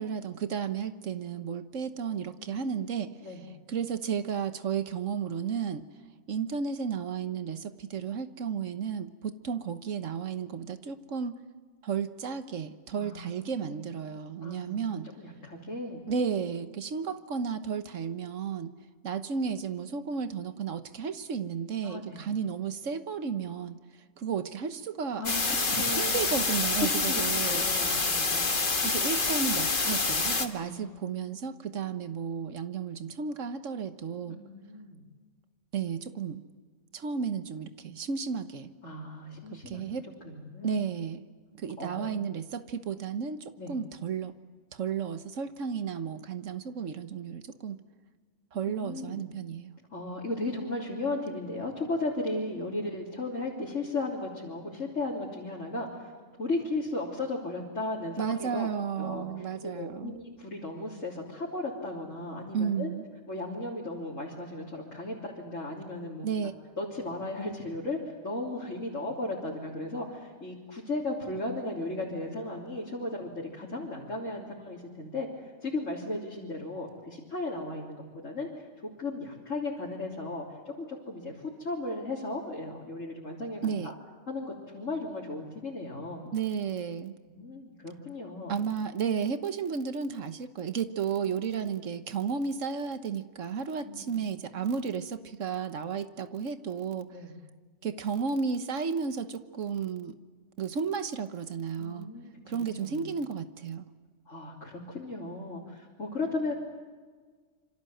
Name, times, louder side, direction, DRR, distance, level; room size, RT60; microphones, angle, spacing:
voice 1, 0.0-3.1 3.7-5.8 6.3-11.3 11.8-15.1 16.1-18.7 19.0-23.8 24.2-25.2 25.7-27.6 28.8-34.4 35.7-36.4 36.9-38.7 39.5-40.1 40.6-41.2 41.6-44.4 44.7-47.8 48.5-49.7 58.2-60.2 62.5-63.0 66.2-66.5 83.6-83.9 86.3-87.1 88.5-97.1 97.8-100.1 100.6-102.1 102.5-103.9, right 6 dB, 90° right, 10 dB, 1.5 m, -33 dB
voice 2, 2.4-3.5 12.9-13.8 14.4-16.0 21.8-22.3 25.2-26.3 26.8-28.6 30.6-31.1 34.3-35.0 38.8-39.9 40.2-40.8 41.8-42.2 43.6-43.8 48.7-49.2 49.9-56.0 56.4-58.7 59.0-59.2 59.6-62.9 63.3-66.5 66.8-80.5 80.8-81.3 81.6-83.9 84.3-86.2 87.3-88.5 93.8-94.2 97.1-97.4 101.8-103.1 104.3-106.5, left 2 dB, 90° left, -4 dB, 3.8 m, -36 dB
sound 1, 25.2-30.5, left 3 dB, 45° left, 1.8 m, -27 dB
27.5 x 25.5 x 7.9 m, 1.5 s
omnidirectional pair, 1.3 m